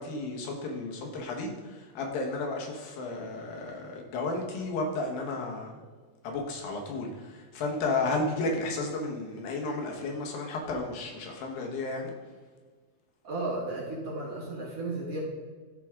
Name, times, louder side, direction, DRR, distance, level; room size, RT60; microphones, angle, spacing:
voice 1, 0.0-5.7 6.2-12.1, left 2 dB, 80° left, 0 dB, 3.0 m, -33 dB
voice 2, 13.2-15.2, right 2 dB, 50° right, -4 dB, 2.4 m, -34 dB
14.0 x 4.6 x 3.7 m, 1.5 s
omnidirectional pair, 4.1 m